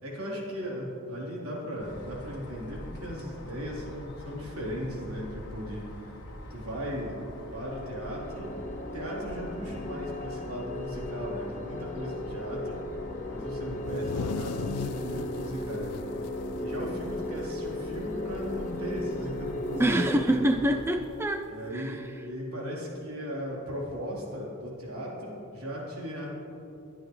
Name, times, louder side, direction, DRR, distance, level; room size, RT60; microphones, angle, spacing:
voice 1, 0.0-6.2 6.5-7.2 7.5-8.6 8.9-12.8 13.3-16.1 16.6-20.4 21.5-26.3, equal, 70° right, -4 dB, 3.8 m, -37 dB
sound 1, 1.8-21.0, left 1 dB, 55° left, 1.6 m, -44 dB
sound 2, 7.6-20.4, left 1 dB, 35° left, 0.8 m, -36 dB
sound 3, 13.7-17.4 17.8-17.9 18.3-18.8 19.9-20.0 21.0-21.1, left 7 dB, 85° left, 0.3 m, -38 dB
voice 2, 19.8-22.0, right 1 dB, 10° right, 6 dB, 0.4 m, -26 dB
21.0 x 12.0 x 3.2 m, 2.8 s
head